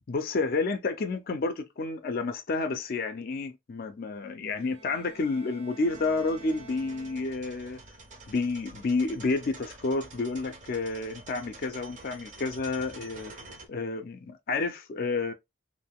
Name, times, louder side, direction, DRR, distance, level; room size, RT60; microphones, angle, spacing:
voice 1, 0.1-7.8 8.3-13.3 13.7-15.3, left 3 dB, 45° left, 0.4 m, -30 dB
Bowed string instrument, 4.6-7.7, right 5 dB, 75° right, 1.2 m, -50 dB
sound 1, 5.8-13.7, right 3 dB, 35° right, 0.5 m, -48 dB
2.5 x 2.2 x 3.4 m
head